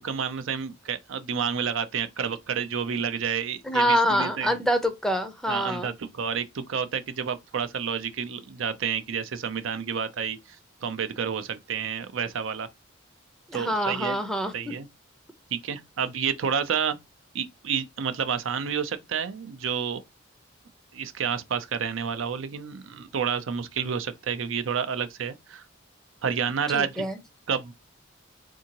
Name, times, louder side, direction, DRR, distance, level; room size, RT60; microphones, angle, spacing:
voice 1, 0.0-4.5 5.5-12.7 13.5-14.2 14.5-14.9 15.5-17.0 17.3-20.0 20.9-25.6 26.2-27.1 27.5-27.7, right 7 dB, 70° right, 0.5 m, -30 dB
voice 2, 3.6-5.9 13.5-14.7 26.7-27.2, equal, ahead, 0.5 m, -26 dB
3.6 x 2.6 x 2.8 m
head